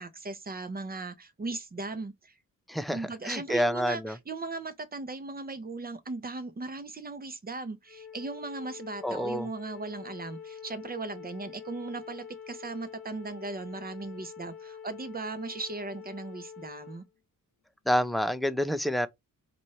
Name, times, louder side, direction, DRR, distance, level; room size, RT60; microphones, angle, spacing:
voice 1, 0.0-2.3 2.9-17.0, right 3 dB, 25° right, 0.8 m, -38 dB
voice 2, 2.7-4.2 9.0-9.5 17.9-19.1, equal, ahead, 0.4 m, -28 dB
Wind instrument woodwind instrument, 7.9-17.0, left 7 dB, 40° left, 0.8 m, -46 dB
4.3 x 2.6 x 3.0 m
cardioid pair, 70°, 34 cm